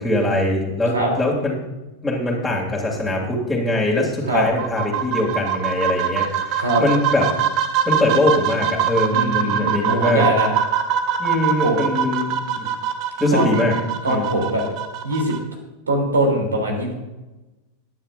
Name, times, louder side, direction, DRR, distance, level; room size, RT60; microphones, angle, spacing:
voice 1, 0.0-1.5 2.0-7.3 7.9-10.2 11.2-12.7 13.2-13.7 14.0-14.4, left 1 dB, ahead, -7 dB, 2.8 m, -22 dB
sound 1, 4.4-15.4, right 8 dB, 40° right, 1.2 m, -23 dB
voice 2, 9.1-10.5 11.6-11.8 13.3-13.5 14.0-14.6 15.0-15.3 15.9-16.9, right 1 dB, 75° right, 2 dB, 3.2 m, -21 dB
21.0 x 10.0 x 2.6 m, 1.1 s
figure-of-eight pair, 90°, 0 cm